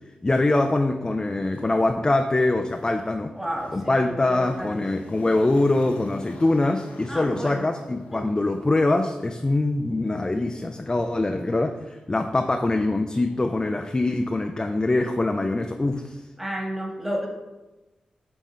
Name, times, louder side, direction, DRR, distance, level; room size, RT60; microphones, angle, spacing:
voice 1, 0.2-3.3 3.7-16.2, left 2 dB, 25° left, 5 dB, 0.4 m, -23 dB
Motor vehicle (road), 1.5-1.6 2.4-15.3 15.6-15.7, left 2 dB, 90° left, 0.9 m, -48 dB
voice 2, 3.3-4.8 7.1-7.6 8.1-8.2 16.4-17.3, equal, 10° right, -1 dB, 1.8 m, -31 dB
7.2 x 3.5 x 4.3 m, 1.1 s
cardioid pair, 50°, 3 cm